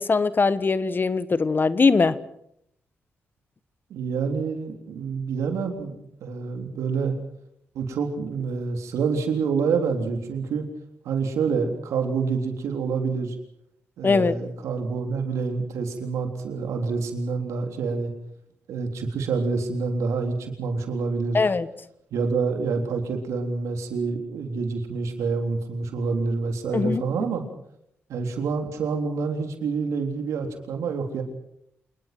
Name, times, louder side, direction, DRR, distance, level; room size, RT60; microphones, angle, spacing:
voice 1, 0.0-2.1 14.0-14.3 21.3-21.7 26.7-27.0, left 4 dB, 40° left, 15 dB, 1.3 m, -21 dB
voice 2, 3.9-7.1 7.7-10.7 11.0-13.4 14.0-18.1 18.7-21.4 22.1-27.4 28.1-31.2, right 5 dB, 80° right, 4 dB, 3.6 m, -27 dB
28.0 x 20.5 x 6.1 m, 0.74 s
supercardioid pair, 50°, 5 cm